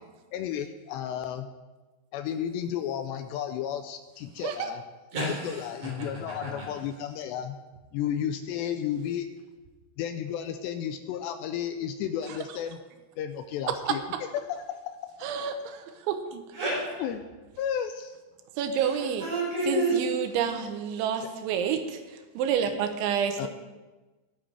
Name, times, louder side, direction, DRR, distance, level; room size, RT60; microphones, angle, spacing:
voice 1, 0.3-1.5 2.1-4.8 5.4-7.6 7.9-9.3 10.0-12.8 13.2-14.0 14.3-14.9 17.0-17.2 17.6-18.2 23.4-23.5, left 9 dB, 80° left, 8 dB, 2.6 m, -33 dB
voice 2, 5.1-5.9 6.4-6.6 16.5-17.0 19.2-20.0, right 1 dB, 55° right, -6 dB, 6.7 m, -29 dB
voice 3, 15.2-16.4 18.6-19.2 19.7-22.0 22.3-23.5, right 8 dB, 90° right, 7 dB, 3.3 m, -29 dB
20.5 x 9.1 x 3.4 m, 1.2 s
omnidirectional pair, 5.3 m